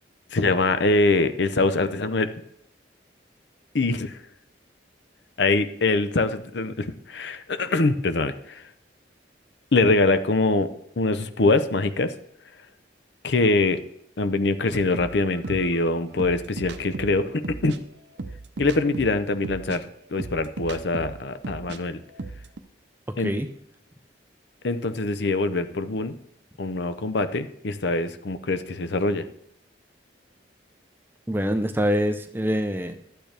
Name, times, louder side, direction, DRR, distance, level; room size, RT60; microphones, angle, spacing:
voice 1, 0.3-2.3 3.7-4.2 5.4-8.7 9.7-10.7 11.0-12.1 13.2-13.8 14.2-17.7 18.6-22.0 23.2-23.3 24.6-26.1 26.6-29.3, left 3 dB, 65° left, 11 dB, 0.7 m, -23 dB
sound 1, 14.7-21.8 22.1-22.6, right 3 dB, 70° right, 0.7 m, -37 dB
voice 2, 31.3-33.0, equal, 10° right, 8 dB, 0.6 m, -24 dB
12.0 x 8.8 x 3.4 m, 0.73 s
head